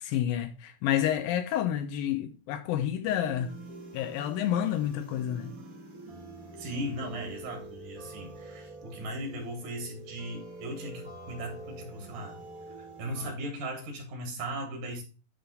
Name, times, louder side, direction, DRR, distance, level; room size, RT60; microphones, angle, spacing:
voice 1, 0.0-3.5 3.9-5.5, left 11 dB, 80° left, 2.3 m, -29 dB
sound 1, 3.0-13.3, right 2 dB, 85° right, 0.7 m, -46 dB
voice 2, 6.6-12.4 13.0-15.0, right 1 dB, 70° right, 3.6 m, -37 dB
10.5 x 3.7 x 4.0 m
omnidirectional pair, 4.3 m